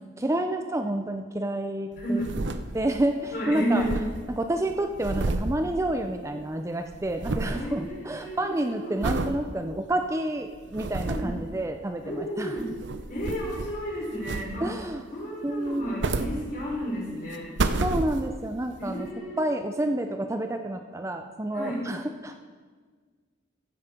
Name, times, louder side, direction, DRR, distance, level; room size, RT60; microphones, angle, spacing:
voice 1, 0.2-2.2 2.7-3.8 4.3-12.6 14.6-15.0 15.4-16.1 17.8-19.1 19.4-22.4, right 1 dB, 15° right, 6 dB, 0.4 m, -29 dB
voice 2, 2.0-2.4 3.3-4.0 7.5-9.0 11.1-11.3 12.0-12.7 13.1-17.5 18.8-19.4 21.5-21.8, equal, 45° left, -4 dB, 4.3 m, -32 dB
sound 1, 2.0-3.1 3.4-3.5 3.6-6.4 6.7-7.7 8.1-8.5 9.0-9.4 9.9-10.0 10.5-11.4 12.4-13.9 14.2-14.8 15.7-16.9 17.3-18.5 19.1-19.2, right 2 dB, 65° right, 0.7 m, -31 dB
14.5 x 8.1 x 5.2 m, 1.5 s
head